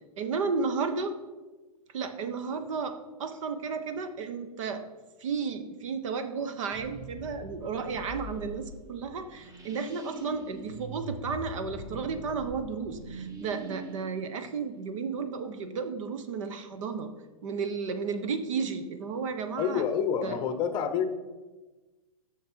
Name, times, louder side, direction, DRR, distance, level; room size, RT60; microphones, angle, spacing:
voice 1, 0.2-1.2 1.9-4.8 5.2-17.1 17.4-19.8 20.2-20.4, right 5 dB, 60° right, 8 dB, 1.1 m, -33 dB
sound 1, 6.7-15.3, right 1 dB, 20° right, 1.2 m, -43 dB
voice 2, 19.6-21.1, left 7 dB, 25° left, 9 dB, 0.8 m, -28 dB
10.0 x 6.6 x 4.6 m, 1.2 s
hypercardioid pair, 135°, 19 cm